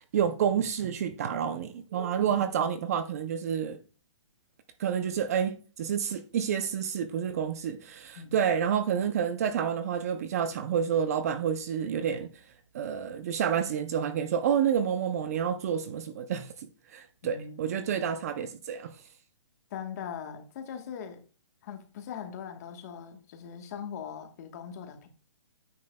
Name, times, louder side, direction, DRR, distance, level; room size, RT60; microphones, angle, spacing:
voice 1, 0.1-3.8 4.8-12.3 12.7-18.9, right 8 dB, 30° right, 0.5 m, -29 dB
voice 2, 2.2-2.6 8.1-8.3 17.2-18.2 19.7-21.2 21.6-25.1, left 7 dB, 35° left, 1.2 m, -41 dB
9.4 x 7.4 x 2.2 m
hypercardioid pair, 165°, 16 cm